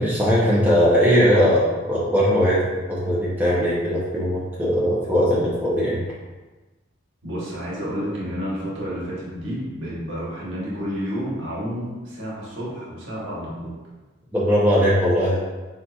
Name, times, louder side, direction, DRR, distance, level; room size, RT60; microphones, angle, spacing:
voice 1, 0.0-6.0 14.3-15.4, equal, 10° right, -8 dB, 0.6 m, -19 dB
voice 2, 7.2-13.7, equal, 80° right, -6 dB, 1.1 m, -30 dB
4.0 x 2.6 x 2.3 m, 1.2 s
head